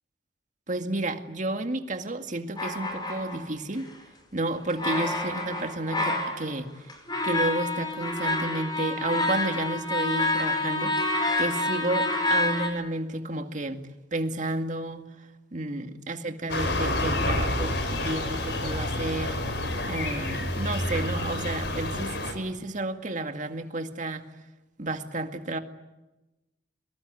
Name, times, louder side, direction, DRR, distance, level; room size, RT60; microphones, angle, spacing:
voice 1, 0.7-3.9 4.3-6.7 7.2-11.0 11.4-15.1 15.5-19.4 19.9-24.2 24.8-25.6, right 2 dB, 45° right, 6 dB, 2.1 m, -31 dB
sound 1, 2.6-3.8 4.7-6.6 6.9-12.7, left 2 dB, 25° left, 5.3 m, -28 dB
sound 2, 16.5-22.3, left 1 dB, 70° left, 5.2 m, -29 dB
24.5 x 22.0 x 9.9 m, 1.0 s
head